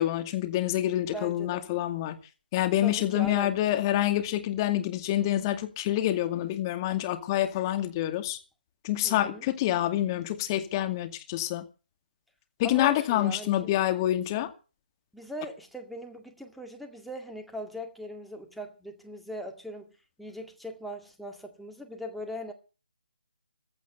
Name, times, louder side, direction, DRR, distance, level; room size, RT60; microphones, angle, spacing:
voice 1, 0.0-2.2 2.5-8.4 8.8-11.6 12.6-14.5, left 13 dB, 25° left, 2.3 m, -27 dB
voice 2, 1.1-1.7 2.8-3.5 9.0-9.5 12.6-13.7 15.1-19.9 20.2-22.5, equal, ahead, 2.2 m, -40 dB
15.5 x 14.0 x 5.4 m
figure-of-eight pair, 150°, 5 cm